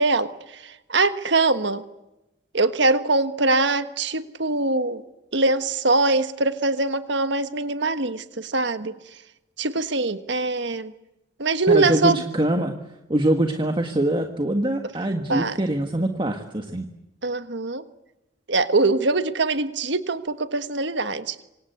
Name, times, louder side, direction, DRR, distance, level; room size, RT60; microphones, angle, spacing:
voice 1, 0.0-1.8 2.5-5.0 5.3-9.0 9.6-10.9 11.4-12.2 15.3-15.6 17.2-17.8 18.5-21.4, right 3 dB, 65° right, 10 dB, 1.5 m, -23 dB
voice 2, 11.7-12.8 13.1-16.9, right 1 dB, 25° right, 5 dB, 1.6 m, -23 dB
27.0 x 25.0 x 8.2 m, 0.93 s
head